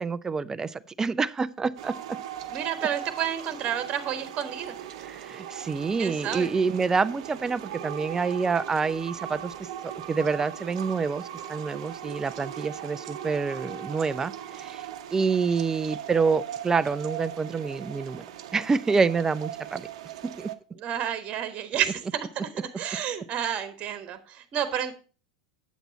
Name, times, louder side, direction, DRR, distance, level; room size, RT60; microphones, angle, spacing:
voice 1, 0.0-2.2 5.0-9.5 10.1-14.8 15.1-18.2 18.5-19.9 20.2-20.5, right 5 dB, 15° right, 17 dB, 0.4 m, -27 dB
sound 1, 1.8-20.6, right 10 dB, 60° right, 0.8 m, -39 dB
voice 2, 2.5-4.8 6.0-6.5 20.8-22.5 22.8-24.9, right 9 dB, 35° right, 11 dB, 1.3 m, -30 dB
8.2 x 8.0 x 4.1 m, 0.36 s
hypercardioid pair, 90°, 4 cm